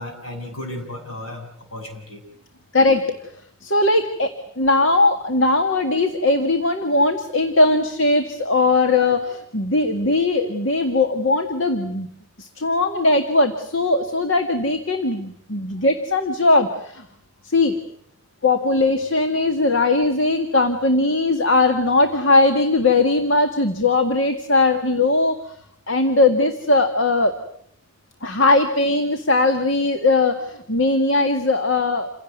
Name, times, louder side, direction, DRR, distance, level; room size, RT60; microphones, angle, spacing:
voice 1, 0.0-2.2, left 1 dB, 80° left, 4 dB, 7.5 m, -34 dB
voice 2, 2.7-3.1 3.6-12.1 12.4-17.1 17.4-17.7 18.4-25.6 25.9-27.4 28.2-32.1, left 2 dB, 65° left, 6 dB, 2.0 m, -19 dB
28.5 x 17.0 x 9.4 m, 0.68 s
head